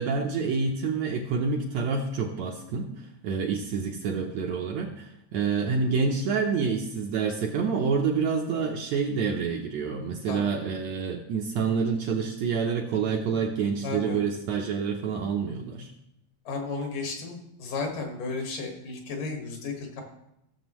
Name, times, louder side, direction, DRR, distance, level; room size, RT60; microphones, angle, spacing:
voice 1, 0.0-15.9, right 5 dB, 75° right, 1 dB, 1.7 m, -28 dB
voice 2, 13.8-14.2 16.5-20.0, left 3 dB, 75° left, 2 dB, 3.2 m, -33 dB
16.0 x 7.0 x 3.0 m, 0.83 s
omnidirectional pair, 3.8 m